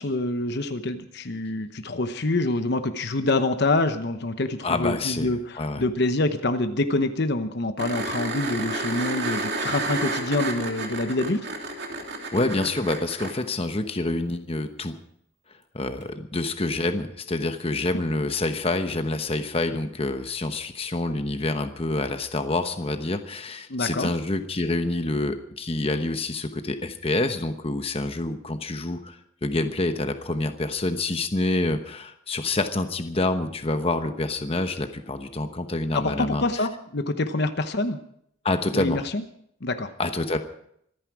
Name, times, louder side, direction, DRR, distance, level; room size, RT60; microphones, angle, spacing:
voice 1, 0.0-11.5 23.7-24.1 35.9-38.0 38.7-39.2 39.6-39.9, left 2 dB, 55° left, 9 dB, 0.9 m, -26 dB
voice 2, 4.6-5.3 5.6-5.8 12.3-15.0 15.7-36.6 38.4-39.0 40.0-40.4, left 2 dB, 30° left, 7 dB, 1.0 m, -27 dB
sound 1, 7.8-13.3 16.0-16.1, right 2 dB, 55° right, 3.0 m, -30 dB
25.0 x 10.0 x 4.8 m, 0.69 s
head